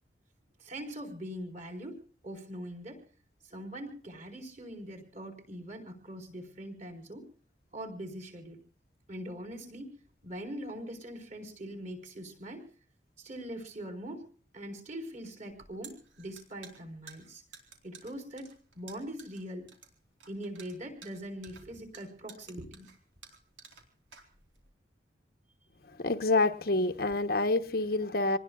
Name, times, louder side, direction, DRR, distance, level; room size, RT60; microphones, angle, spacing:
voice 1, 0.6-3.0 3.4-7.3 7.7-8.6 9.1-9.9 10.2-12.6 13.2-14.2 14.5-17.4 17.8-19.7 20.3-22.9, equal, 40° right, 4.7 m, -42 dB
sound 1, 15.5-24.7, right 5 dB, 85° right, 4.1 m, -53 dB
voice 2, 26.0-28.4, left 2 dB, 55° left, 0.9 m, -27 dB
27.0 x 20.0 x 2.4 m
head